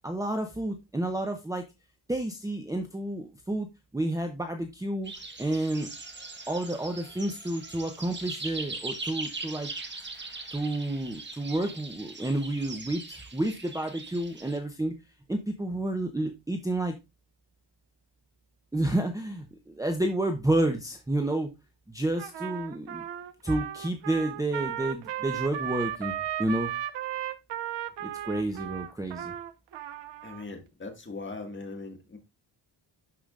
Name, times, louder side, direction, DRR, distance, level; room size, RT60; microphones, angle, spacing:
voice 1, 0.0-1.6 2.1-3.7 3.9-5.1 5.4-5.9 6.5-9.7 10.5-14.9 15.3-17.0 18.7-21.5 21.9-23.0 23.4-26.7 28.0-29.3, right 1 dB, 10° right, 4 dB, 0.8 m, -30 dB
sound 1, 5.0-14.6, right 3 dB, 25° right, 1.3 m, -41 dB
Trumpet, 22.2-30.5, right 11 dB, 65° right, 0.7 m, -35 dB
voice 2, 30.2-32.2, left 3 dB, 25° left, 3 dB, 1.9 m, -40 dB
11.5 x 4.9 x 2.5 m, 0.24 s
wide cardioid pair, 145°, 45 cm